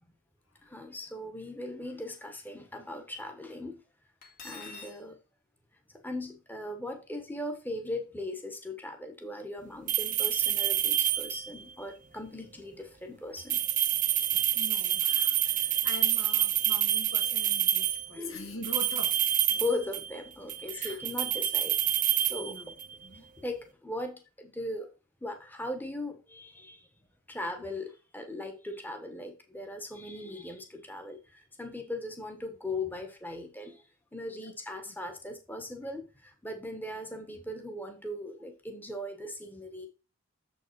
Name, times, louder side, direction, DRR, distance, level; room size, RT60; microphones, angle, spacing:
voice 1, 0.7-3.8 4.4-5.1 6.0-13.6 15.6-15.8 18.1-18.5 19.6-21.7 22.3-22.6 23.4-24.9 25.2-26.8 27.3-33.8 34.1-39.9, left 1 dB, 10° left, 1.1 m, -38 dB
Cutlery silverware, 4.2-5.0, left 4 dB, 45° left, 2.0 m, -45 dB
sound 1, 9.9-11.6 13.4-18.1 18.6-20.2 20.5-23.0, right 12 dB, 40° right, 0.6 m, -28 dB
voice 2, 14.5-19.2 19.5-19.6 20.7-21.0 22.4-22.7 23.0-23.3 34.4-35.0, left 1 dB, 80° left, 1.9 m, -44 dB
7.2 x 5.4 x 4.6 m
head